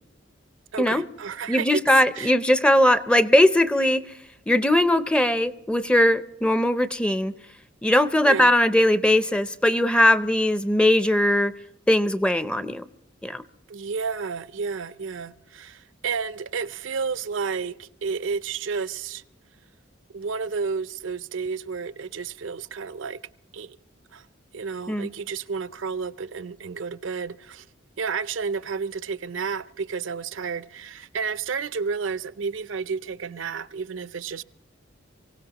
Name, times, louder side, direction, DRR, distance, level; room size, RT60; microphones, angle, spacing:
voice 1, 0.7-1.7 2.1-2.3 8.2-8.5 13.7-19.2 20.1-23.2 23.5-23.8 24.1-24.2 24.5-27.6 28.0-34.4, right 5 dB, 85° right, 0.5 m, -31 dB
voice 2, 1.5-4.1 4.5-7.3 7.8-11.5 11.9-12.8 13.2-13.4 24.9-25.1, left 1 dB, 5° left, 0.5 m, -20 dB
24.5 x 17.0 x 2.9 m
head